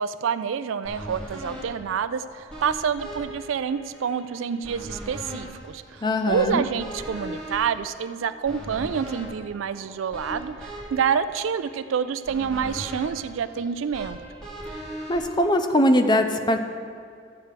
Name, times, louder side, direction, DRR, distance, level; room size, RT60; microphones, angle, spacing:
voice 1, 0.0-14.2, right 7 dB, 75° right, 13 dB, 0.4 m, -28 dB
sound 1, 0.8-16.1, right 1 dB, 5° left, 2.4 m, -39 dB
voice 2, 6.0-6.6 15.1-16.6, left 1 dB, 20° left, 7 dB, 0.5 m, -21 dB
14.0 x 8.0 x 3.3 m, 2.3 s
head